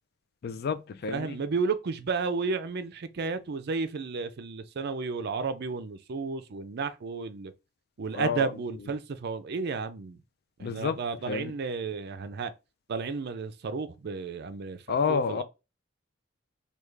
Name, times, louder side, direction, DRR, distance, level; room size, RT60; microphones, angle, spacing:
voice 1, 0.4-1.3 8.1-8.5 10.6-11.0 11.3-11.5 14.9-15.4, left 5 dB, 50° left, 0.4 m, -29 dB
voice 2, 1.1-7.5 8.0-10.2 10.6-12.5 12.9-15.4, right 4 dB, 55° right, 0.4 m, -32 dB
3.5 x 2.3 x 3.2 m
head